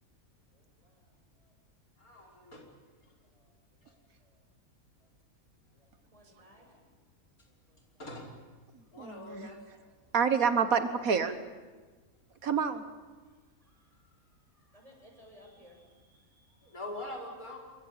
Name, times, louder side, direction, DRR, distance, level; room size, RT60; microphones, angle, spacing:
voice 1, 0.5-1.5 3.0-4.4 5.0-5.1 5.7-7.0 7.4-8.0 9.8-10.0 13.2-16.8, equal, 25° right, 1 dB, 7.7 m, -62 dB
voice 2, 2.0-2.6 8.0-8.2 8.9-9.6 16.6-17.6, left 1 dB, 80° left, -1 dB, 5.9 m, -43 dB
voice 3, 8.7-9.5 10.1-11.3 12.4-12.8, right 6 dB, 75° right, 9 dB, 1.8 m, -28 dB
27.5 x 24.0 x 9.0 m, 1.4 s
omnidirectional pair, 1.5 m